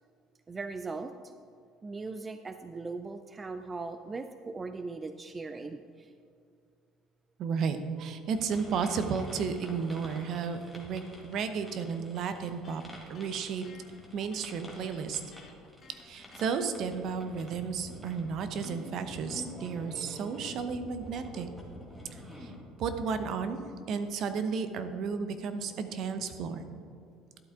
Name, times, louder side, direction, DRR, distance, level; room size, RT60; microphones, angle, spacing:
voice 1, 0.5-1.1 1.8-6.1, right 3 dB, 25° right, 9 dB, 0.4 m, -39 dB
voice 2, 7.4-12.8 13.1-13.6 14.1-15.2 15.9-21.5 22.1-22.5 22.8-26.6, right 5 dB, 55° right, 9 dB, 0.8 m, -33 dB
sound 1, 8.3-22.6, left 1 dB, ahead, 2.1 m, -48 dB
Electric guitar, 11.3-16.6, left 5 dB, 40° left, 1.2 m, -57 dB
12.0 x 8.3 x 3.7 m, 2.4 s
cardioid pair, 110°, 0 cm